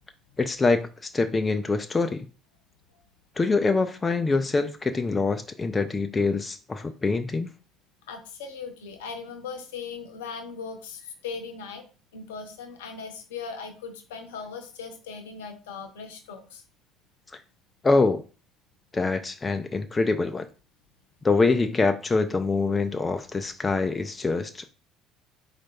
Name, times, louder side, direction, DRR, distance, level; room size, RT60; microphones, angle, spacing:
voice 1, 0.4-2.3 3.4-7.5 17.8-18.2 18.9-20.5 21.2-24.7, left 3 dB, 25° left, 0.4 m, -24 dB
voice 2, 8.1-11.8 12.1-16.6, left 5 dB, 70° left, 0.7 m, -38 dB
4.3 x 2.4 x 4.4 m
figure-of-eight pair, 55°, 0 cm